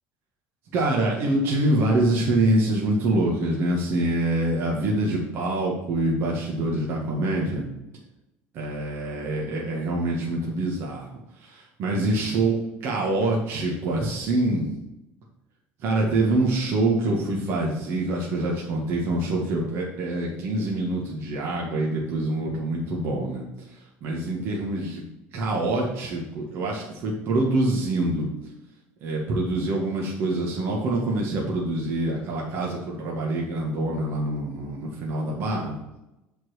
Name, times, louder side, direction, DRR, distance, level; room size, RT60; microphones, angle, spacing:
voice 1, 0.7-7.6 8.5-12.6 12.8-14.7 15.8-23.5 24.0-25.0 25.3-28.3 29.0-35.8, right 2 dB, 50° right, -2 dB, 1.8 m, -25 dB
8.0 x 4.5 x 6.5 m, 0.93 s
cardioid pair, 145°, 5 cm